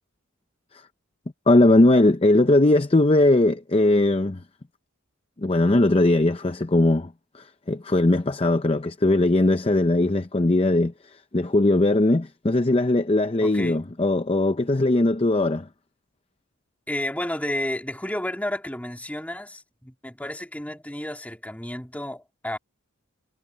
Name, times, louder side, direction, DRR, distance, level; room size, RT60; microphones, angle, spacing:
voice 1, 1.5-4.4 5.4-10.9 11.3-15.7, left 2 dB, 25° left, 0.6 m, -19 dB
voice 2, 13.4-13.8 16.9-22.6, left 1 dB, 5° left, 2.7 m, -31 dB
head